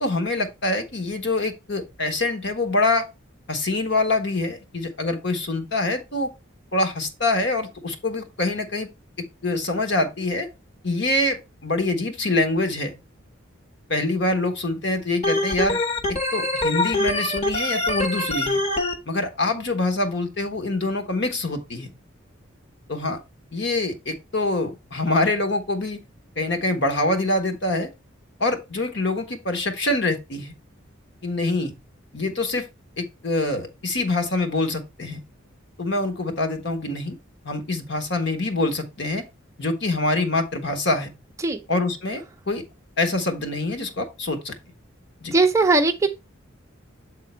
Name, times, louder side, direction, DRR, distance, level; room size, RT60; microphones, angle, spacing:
voice 1, 0.0-3.1 3.5-6.3 6.7-8.9 9.4-10.5 10.8-12.9 13.9-15.8 16.3-18.6 19.1-21.9 22.9-23.2 23.5-26.0 26.4-27.9 28.4-30.5 31.2-31.7 32.1-32.7 33.0-35.2 35.8-37.2 37.4-39.2 39.6-41.1 41.7-42.6 43.0-44.5 45.2-45.3, left 2 dB, 55° left, 1.3 m, -25 dB
Organ, 15.2-18.9, left 2 dB, 30° left, 1.0 m, -24 dB
voice 2, 45.3-46.1, right 3 dB, 15° right, 0.5 m, -19 dB
7.7 x 3.7 x 4.4 m
head